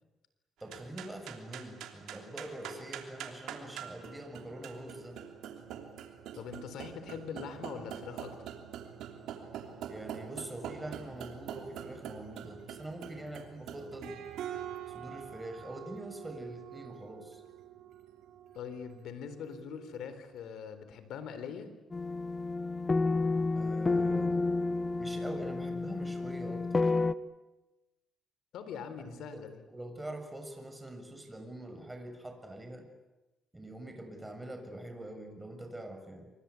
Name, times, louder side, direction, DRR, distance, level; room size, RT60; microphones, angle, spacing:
voice 1, 0.6-5.2 9.9-14.2 14.9-17.4 23.5-24.3 25.0-26.9 29.0-32.8 33.5-36.3, right 1 dB, 10° right, 6 dB, 6.9 m, -44 dB
sound 1, 0.6-20.1, right 9 dB, 85° right, 3.2 m, -45 dB
voice 2, 6.4-8.4 18.5-21.7 28.5-29.6, left 7 dB, 80° left, 11 dB, 4.0 m, -42 dB
sound 2, 21.9-27.1, left 3 dB, 30° left, 1.0 m, -30 dB
27.5 x 24.5 x 8.5 m, 1.1 s
cardioid pair, 90°, 0 cm